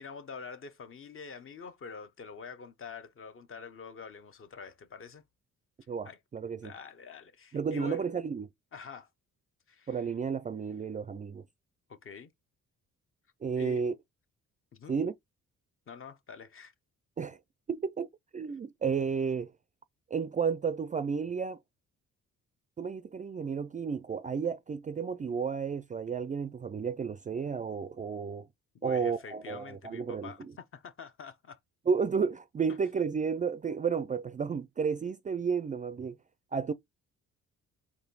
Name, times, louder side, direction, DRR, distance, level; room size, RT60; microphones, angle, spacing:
voice 1, 0.0-5.2 6.0-6.2 6.6-8.0 8.7-9.1 9.7-10.1 11.9-12.3 13.5-13.8 14.7-15.0 15.9-16.7 28.7-31.6, left 5 dB, 45° left, 0.9 m, -46 dB
voice 2, 5.9-6.7 7.5-8.5 9.9-11.4 13.4-13.9 14.9-15.1 17.2-17.4 17.7-19.5 20.1-21.6 22.8-28.5 28.8-30.5 31.9-36.2 36.5-36.7, right 6 dB, 25° right, 0.3 m, -32 dB
4.1 x 3.0 x 4.0 m
cardioid pair, 90°, 30 cm